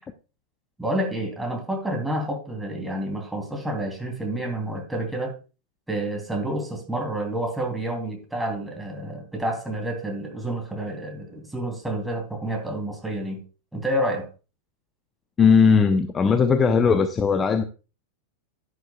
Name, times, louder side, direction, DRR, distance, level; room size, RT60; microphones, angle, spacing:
voice 1, 0.8-5.4 5.9-13.4 13.7-14.3, right 1 dB, 5° right, 3.0 m, -29 dB
voice 2, 15.4-17.6, left 5 dB, 20° left, 0.7 m, -18 dB
11.0 x 10.5 x 2.3 m
figure-of-eight pair, 90°, 0 cm